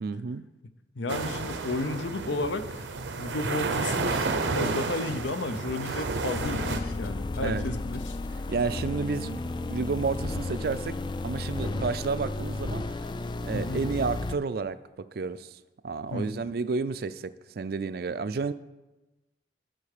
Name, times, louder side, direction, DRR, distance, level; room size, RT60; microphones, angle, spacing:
voice 1, 0.0-0.4 7.4-7.8 8.5-11.0 11.2-12.8 13.4-18.5, right 4 dB, 55° right, 14 dB, 0.4 m, -31 dB
voice 2, 1.0-2.9 3.2-4.2 4.4-8.2 13.4-13.8 16.1-16.4, left 2 dB, 80° left, 11 dB, 0.7 m, -33 dB
sound 1, 1.1-6.8, right 3 dB, 80° right, 0.7 m, -31 dB
sound 2, 3.8-8.0 8.2-8.3 8.5-8.6, left 3 dB, 55° left, 0.9 m, -45 dB
sound 3, 6.3-14.4, left 2 dB, 25° left, 0.3 m, -33 dB
11.5 x 4.7 x 6.6 m, 1.1 s
head